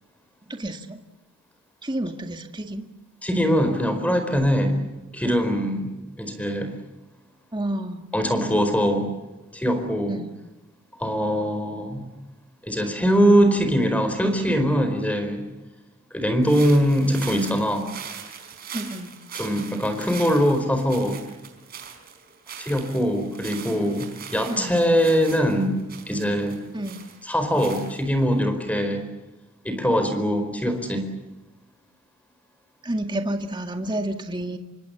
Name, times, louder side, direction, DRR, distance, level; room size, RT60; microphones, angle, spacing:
voice 1, 0.5-1.0 1.8-2.9 7.5-8.1 10.1-10.3 18.7-19.1 24.5-24.8 26.7-27.0 32.8-34.6, right 1 dB, 20° right, 5 dB, 1.9 m, -30 dB
voice 2, 3.2-4.8 5.1-5.9 6.2-6.8 8.1-9.1 9.5-10.2 11.0-12.1 12.6-15.4 16.1-17.9 19.4-21.2 22.6-25.8 26.1-26.6 27.3-29.1 29.6-31.1, equal, 5° left, 8 dB, 4.5 m, -22 dB
sound 1, 16.4-28.3, right 8 dB, 45° right, 4.4 m, -41 dB
28.5 x 24.5 x 7.0 m, 1.1 s
head